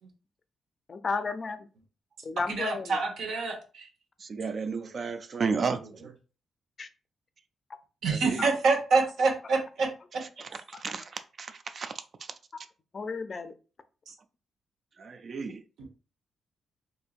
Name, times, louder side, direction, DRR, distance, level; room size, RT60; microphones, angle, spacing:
voice 1, 0.9-1.7 2.2-3.0 6.8-6.9 8.4-8.5 10.7-10.8 12.9-13.5, left 4 dB, 35° left, 0.4 m, -33 dB
voice 2, 2.5-3.9 8.0-9.9 14.1-14.2, right 4 dB, 75° right, 1.0 m, -26 dB
voice 3, 4.2-6.1 8.0-8.5 10.2-11.9 12.2-12.3 15.0-15.6, right 5 dB, 40° right, 0.3 m, -33 dB
4.4 x 2.6 x 2.4 m
cardioid pair, 135°, 0 cm